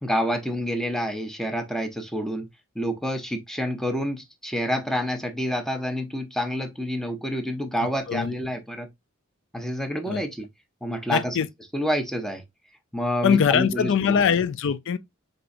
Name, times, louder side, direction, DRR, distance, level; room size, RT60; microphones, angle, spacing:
voice 1, 0.0-2.5 2.8-8.9 9.5-10.5 10.8-11.4 11.7-12.4 12.9-14.2, equal, ahead, 0.6 m, -28 dB
voice 2, 11.1-11.5 13.2-15.0, left 7 dB, 60° left, 0.4 m, -22 dB
4.6 x 3.9 x 2.5 m
head